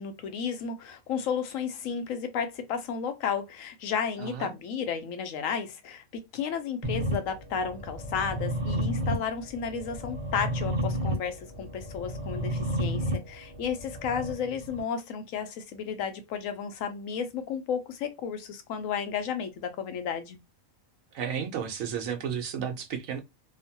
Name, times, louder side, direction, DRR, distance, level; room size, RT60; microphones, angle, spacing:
voice 1, 0.0-20.4, left 7 dB, 80° left, 1.0 m, -33 dB
voice 2, 4.2-4.5 21.1-23.2, right 7 dB, 80° right, 1.1 m, -33 dB
sound 1, 6.8-14.8, equal, 25° right, 0.9 m, -32 dB
2.9 x 2.1 x 2.7 m
omnidirectional pair, 1.4 m